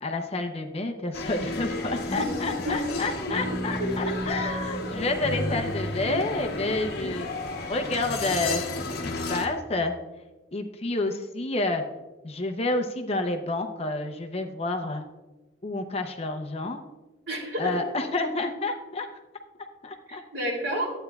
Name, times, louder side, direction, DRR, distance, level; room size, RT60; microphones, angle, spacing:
voice 1, 0.0-7.3 7.7-8.9 9.3-9.9 10.5-11.8 12.2-15.1 15.6-16.8 17.6-19.1 19.8-20.2, left 2 dB, 35° left, 5 dB, 0.6 m, -29 dB
sound 1, 1.1-9.5, left 2 dB, 60° left, 1.0 m, -32 dB
voice 2, 2.2-3.0 3.5-4.3 17.3-17.8 20.1-20.9, equal, 70° right, -1 dB, 2.9 m, -31 dB
11.5 x 8.8 x 2.3 m, 1.2 s
head